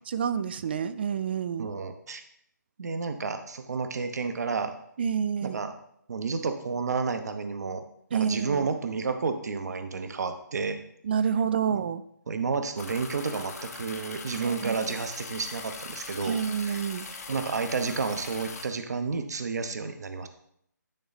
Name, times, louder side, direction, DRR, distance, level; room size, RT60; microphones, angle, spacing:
voice 1, 0.1-1.7 5.0-5.6 8.1-8.7 11.0-12.0 14.4-14.8 16.2-17.1, right 7 dB, 35° right, 13 dB, 0.4 m, -28 dB
voice 2, 1.6-2.2 2.8-4.7 5.4-5.7 6.1-7.8 8.1-10.8 11.7-11.8 12.3-16.8 17.3-20.3, right 4 dB, 60° right, 8 dB, 0.8 m, -31 dB
sound 1, 12.8-18.7, left 4 dB, 55° left, 1.2 m, -41 dB
10.0 x 3.8 x 4.1 m, 0.71 s
figure-of-eight pair, 155°, 10 cm